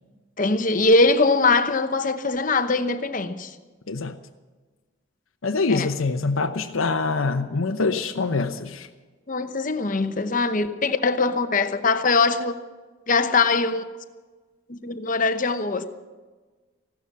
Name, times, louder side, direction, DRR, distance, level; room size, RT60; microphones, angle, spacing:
voice 1, 0.4-3.5 5.7-5.9 9.3-12.5 13.1-13.8 14.7-15.8, left 3 dB, 40° left, 0.9 m, -22 dB
voice 2, 5.4-8.9, left 3 dB, 90° left, 0.8 m, -24 dB
16.0 x 12.5 x 7.4 m
head